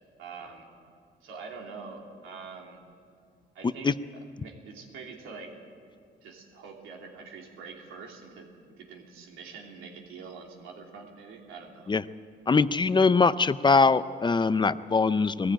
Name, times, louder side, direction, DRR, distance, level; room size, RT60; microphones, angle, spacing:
voice 1, 0.2-0.7 1.2-2.8 3.5-3.9 4.4-5.6 6.2-11.9, right 5 dB, 90° right, 1 dB, 3.1 m, -45 dB
voice 2, 12.5-15.5, left 4 dB, 25° left, 15 dB, 0.5 m, -22 dB
19.5 x 15.0 x 9.0 m, 2.2 s
cardioid pair, 90°, 20 cm